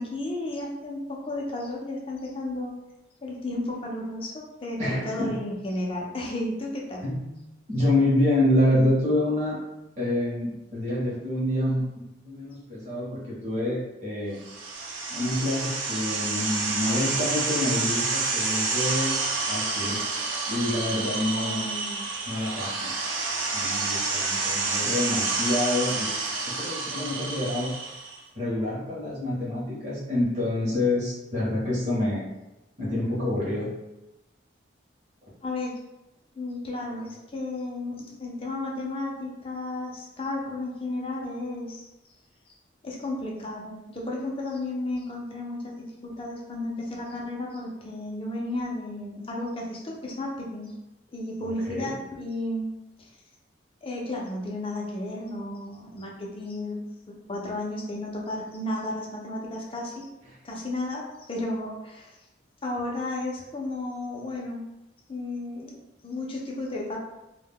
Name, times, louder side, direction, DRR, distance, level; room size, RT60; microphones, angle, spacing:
voice 1, 0.0-2.7 3.2-7.0 21.3-22.1 35.4-35.7 36.3-41.9 42.8-50.7 51.1-52.7 53.0-53.1 53.8-56.8 57.3-60.1 60.4-62.2 62.6-64.6 65.1-67.0, left 2 dB, 30° left, -2 dB, 0.4 m, -33 dB
voice 2, 4.8-5.4 7.0-7.2 7.7-9.6 10.0-14.4 15.1-19.1 19.5-20.0 20.5-21.6 22.3-22.9 23.5-26.1 26.5-27.7 28.3-32.2 32.8-33.7 51.4-51.9, left 1 dB, 35° right, -7 dB, 0.8 m, -27 dB
sound 1, 14.4-28.2, right 3 dB, 85° right, 0.5 m, -29 dB
2.1 x 2.1 x 3.5 m, 0.96 s
head